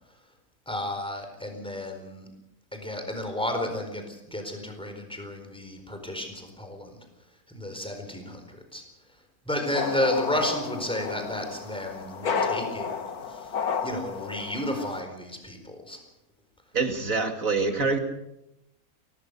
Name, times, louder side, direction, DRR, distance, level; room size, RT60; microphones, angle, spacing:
voice 1, 0.7-2.3 2.7-6.9 7.5-8.8 9.5-13.5 13.8-16.0, left 1 dB, 5° left, 4 dB, 4.4 m, -32 dB
sound 1, 9.7-15.0, left 6 dB, 80° left, 1.9 m, -32 dB
voice 2, 16.7-18.0, right 4 dB, 60° right, 5 dB, 2.7 m, -25 dB
24.5 x 18.0 x 7.0 m, 0.88 s
omnidirectional pair, 1.6 m